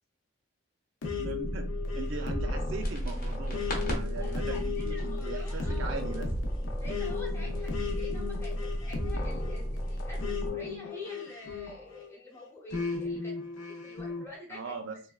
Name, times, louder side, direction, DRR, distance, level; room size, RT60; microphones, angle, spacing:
sound 1, 1.0-12.1 12.7-14.2, left 4 dB, 80° left, 0.6 m, -36 dB
voice 1, 1.2-6.3 14.5-15.0, right 4 dB, 80° right, 6 dB, 0.4 m, -40 dB
sound 2, 1.4-10.5, equal, 10° right, 0.4 m, -35 dB
sound 3, 2.8-10.4, equal, 45° left, 0.7 m, -41 dB
voice 2, 4.2-5.9 6.8-14.7, left 1 dB, 15° left, -3 dB, 0.8 m, -47 dB
3.2 x 2.2 x 2.3 m, 0.39 s
head